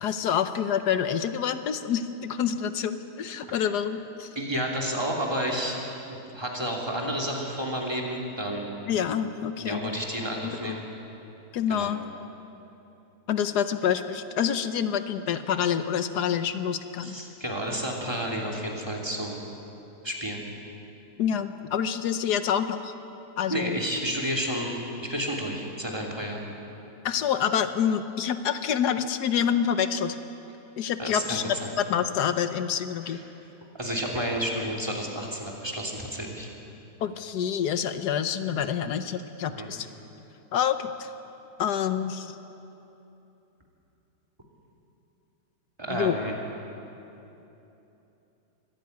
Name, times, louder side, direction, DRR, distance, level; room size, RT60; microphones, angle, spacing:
voice 1, 0.0-4.3 8.9-9.9 10.4-10.8 11.5-12.0 13.3-17.2 21.2-22.9 23.4-23.8 27.0-30.2 30.8-33.2 37.0-39.9 40.5-41.1 41.6-42.4 45.9-46.2, left 8 dB, 85° left, 10 dB, 1.4 m, -27 dB
voice 2, 4.3-5.8 6.1-8.7 9.6-10.8 11.7-11.9 17.0-19.4 20.0-20.4 23.5-26.4 31.0-31.7 33.0-33.2 33.7-36.5 39.6-39.7 45.8-46.3, equal, 15° right, -1 dB, 3.0 m, -31 dB
24.0 x 14.5 x 9.5 m, 3.0 s
omnidirectional pair, 1.7 m